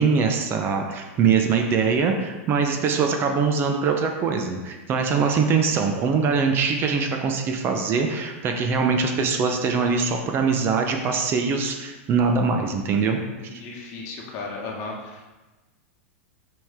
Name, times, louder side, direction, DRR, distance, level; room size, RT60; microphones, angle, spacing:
voice 1, 0.0-13.2 13.5-13.6, right 5 dB, 30° right, 4 dB, 0.8 m, -22 dB
voice 2, 13.5-15.4, left 3 dB, 45° left, -1 dB, 1.6 m, -35 dB
6.1 x 5.2 x 3.7 m, 1.2 s
hypercardioid pair, 130°, 7 cm